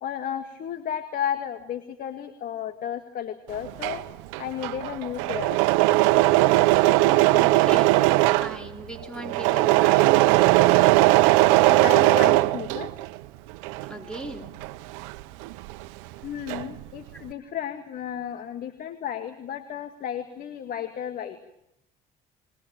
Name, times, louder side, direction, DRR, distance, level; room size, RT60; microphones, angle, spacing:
voice 1, 0.0-4.0 4.4-5.6 11.7-12.9 16.2-21.4, left 9 dB, 60° left, 8 dB, 2.0 m, -33 dB
Engine / Mechanisms, 3.6-13.2 13.5-16.8, right 19 dB, 85° right, 1.0 m, -20 dB
voice 2, 6.8-10.2 13.9-14.6 17.1-17.2, right 1 dB, 5° left, 5 dB, 3.8 m, -39 dB
22.5 x 21.0 x 8.9 m, 0.81 s
supercardioid pair, 85°, 17 cm